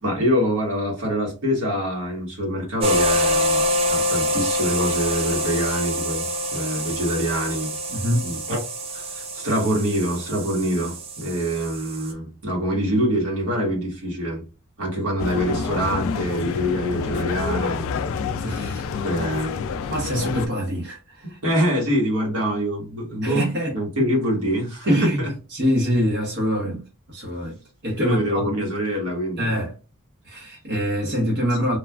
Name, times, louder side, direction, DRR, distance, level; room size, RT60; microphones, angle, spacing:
voice 1, 0.0-3.6 3.9-7.7 8.2-8.6 8.9-14.4 14.8-17.8 19.0-19.6 21.4-23.5 23.7-25.3 28.0-29.5, equal, 80° right, 1.3 m, -25 dB
sound 1, 2.8-12.1, equal, 25° right, 0.4 m, -25 dB
voice 2, 7.9-8.2 18.4-18.9 19.9-21.4 23.2-23.8 24.8-25.2 25.5-26.8 27.1-27.6 27.8-28.7 29.4-29.7 30.2-31.8, equal, 50° right, 0.8 m, -24 dB
sound 2, 15.2-20.5, left 5 dB, 65° left, 0.3 m, -28 dB
3.2 x 2.3 x 2.3 m
head